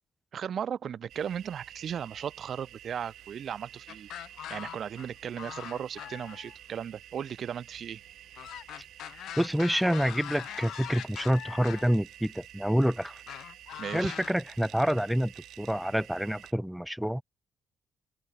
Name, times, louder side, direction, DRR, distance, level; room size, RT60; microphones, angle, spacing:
voice 1, 0.3-4.1 4.5-8.0 13.8-14.2, right 8 dB, 60° right, 0.7 m, -36 dB
sound 1, 1.1-16.5, right 12 dB, 80° right, 3.1 m, -50 dB
sound 2, 3.9-5.1 5.4-6.6 8.3-11.9 13.3-14.3, left 12 dB, 80° left, 0.9 m, -42 dB
voice 2, 9.4-13.2 13.9-15.3 15.6-17.2, equal, 5° right, 0.6 m, -27 dB
open air
cardioid pair, 90°, 0 cm